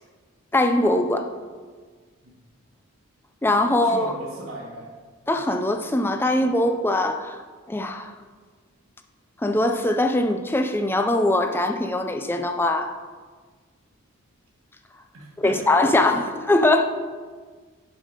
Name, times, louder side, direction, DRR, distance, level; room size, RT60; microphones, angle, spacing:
voice 1, 0.5-1.3 3.4-4.1 5.3-7.4 7.7-8.1 9.4-12.9 15.4-16.8, left 1 dB, 10° left, 6 dB, 0.4 m, -21 dB
voice 2, 3.7-4.9 15.1-16.2, right 1 dB, 80° right, -3 dB, 1.3 m, -38 dB
7.1 x 5.5 x 5.0 m, 1.5 s
head